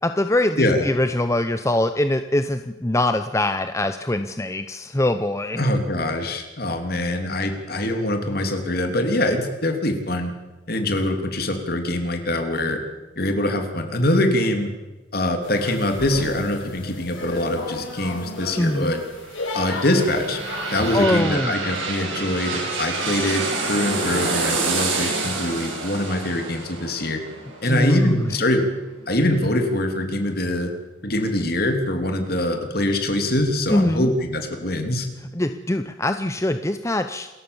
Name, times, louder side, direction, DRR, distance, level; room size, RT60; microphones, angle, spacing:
voice 1, 0.0-5.6 18.6-18.9 20.9-21.5 27.6-28.3 33.7-34.1 35.3-37.3, left 1 dB, 15° left, 9 dB, 0.7 m, -23 dB
voice 2, 0.6-0.9 5.6-10.3 10.7-12.8 13.2-14.7 15.1-19.0 19.5-20.4 20.7-27.2 27.6-28.7 29.1-30.7 31.0-35.1, left 1 dB, 50° left, 5 dB, 3.2 m, -23 dB
sound 1, 15.4-21.0, left 2 dB, 85° left, 7.0 m, -33 dB
sound 2, 19.2-28.8 29.2-29.3, right 3 dB, 80° right, 7.3 m, -28 dB
27.5 x 15.0 x 7.2 m, 1.1 s
head